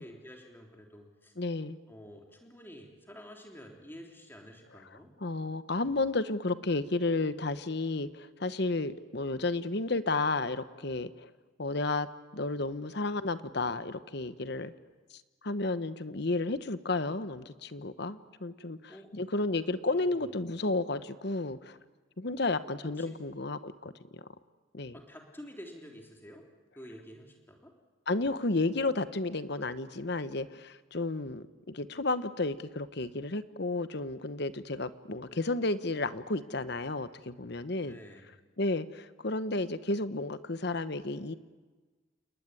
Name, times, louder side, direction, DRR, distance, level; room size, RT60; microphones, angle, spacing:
voice 1, 0.0-1.3 1.9-5.1 18.9-19.1 19.6-20.4 22.8-23.2 24.9-26.5 26.7-27.7 37.8-38.3, equal, 10° left, 1 dB, 3.4 m, -50 dB
voice 2, 1.4-1.8 5.2-11.3 11.6-12.1 12.3-14.7 15.4-21.8 22.2-23.9 24.7-25.0 28.1-38.0 38.6-41.3, left 2 dB, 55° left, 13 dB, 1.0 m, -32 dB
28.5 x 20.0 x 9.8 m, 1.3 s
head